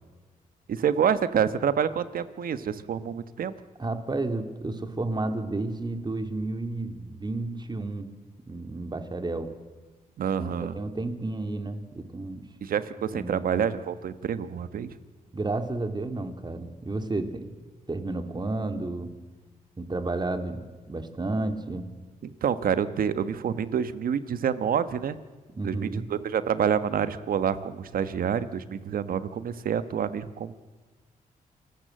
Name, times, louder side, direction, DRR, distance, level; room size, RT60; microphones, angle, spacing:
voice 1, 0.7-3.5 10.2-10.7 12.6-15.0 22.2-25.2 25.6-30.6, right 8 dB, 75° right, 13 dB, 1.3 m, -27 dB
voice 2, 3.8-8.1 8.5-9.5 10.4-12.5 13.1-13.5 15.3-17.5 17.9-19.2 19.8-21.9 25.5-26.1, right 2 dB, 30° right, 7 dB, 2.7 m, -32 dB
28.0 x 19.0 x 7.8 m, 1.3 s
cardioid pair, 75°, 15 cm